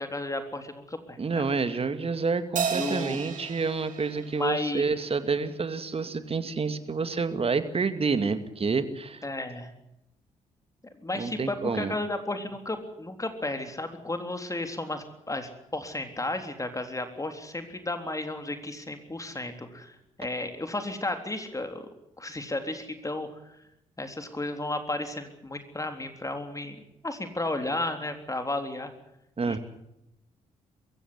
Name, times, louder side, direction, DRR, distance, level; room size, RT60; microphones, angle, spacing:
voice 1, 0.0-1.5 2.7-3.2 4.4-4.9 9.2-9.7 11.0-21.9 22.2-23.6 24.0-28.9 29.5-29.6, left 2 dB, 20° left, 7 dB, 3.7 m, -33 dB
voice 2, 1.2-9.2 11.1-11.9 29.4-29.6, right 4 dB, 40° right, 10 dB, 2.4 m, -28 dB
Crash cymbal, 2.6-5.2, right 6 dB, 60° right, 3.5 m, -34 dB
23.0 x 15.5 x 9.8 m, 0.84 s
hypercardioid pair, 45°, 15 cm